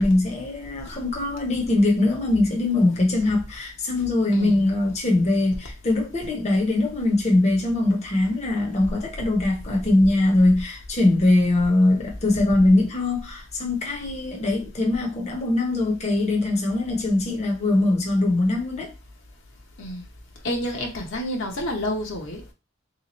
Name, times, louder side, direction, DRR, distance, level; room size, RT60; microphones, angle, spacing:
voice 1, 0.0-18.9, left 2 dB, 35° left, 0.8 m, -22 dB
voice 2, 4.3-4.7 19.8-20.0 20.4-22.4, left 1 dB, 60° left, 0.8 m, -29 dB
3.4 x 2.9 x 2.9 m
head